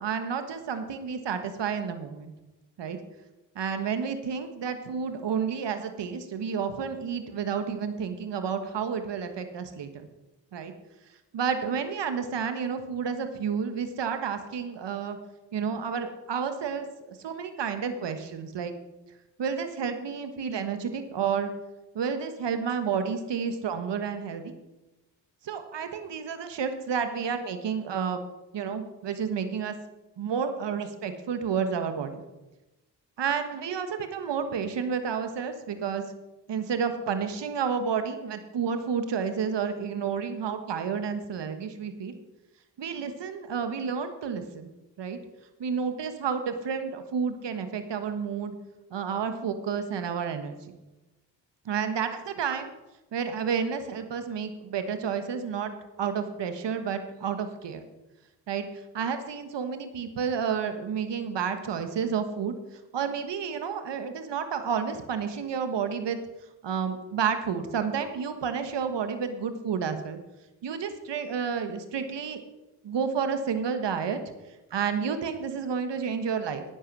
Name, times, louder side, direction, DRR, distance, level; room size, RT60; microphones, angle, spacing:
voice 1, 0.0-2.3 2.8-3.0 3.5-10.1 10.5-10.7 11.3-15.2 15.5-18.7 19.4-21.5 21.9-24.5 25.4-28.2 28.5-29.7 30.2-32.2 33.2-36.0 36.5-42.1 42.8-44.7 45.0-45.2 45.6-48.6 48.9-50.6 51.6-52.7 53.1-57.9 58.5-58.6 58.9-62.5 62.9-66.2 66.6-70.2 70.6-72.4 72.8-74.2 74.7-76.6, right 6 dB, 65° right, 8 dB, 1.4 m, -30 dB
9.8 x 8.7 x 6.2 m, 1.0 s
supercardioid pair, 40°, 45 cm